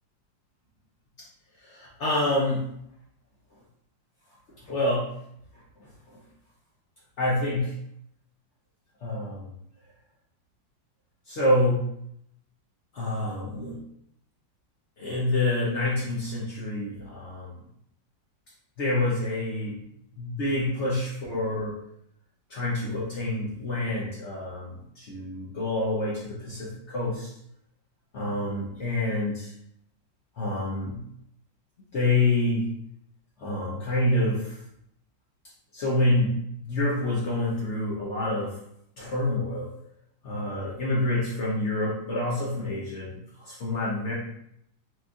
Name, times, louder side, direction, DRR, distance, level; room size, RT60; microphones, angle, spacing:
voice 1, 1.6-2.7 4.7-5.1 5.8-5.9 7.2-7.7 9.0-9.5 11.3-11.8 12.9-13.8 15.0-17.6 18.8-19.8 20.2-21.8 22.5-27.3 28.1-29.5 30.4-31.0 31.9-32.7 33.4-34.6 35.7-36.3 36.6-38.6 39.0-39.7 40.2-44.1, left 2 dB, 65° left, -5 dB, 0.7 m, -27 dB
4.4 x 2.5 x 2.3 m, 0.74 s
omnidirectional pair, 2.1 m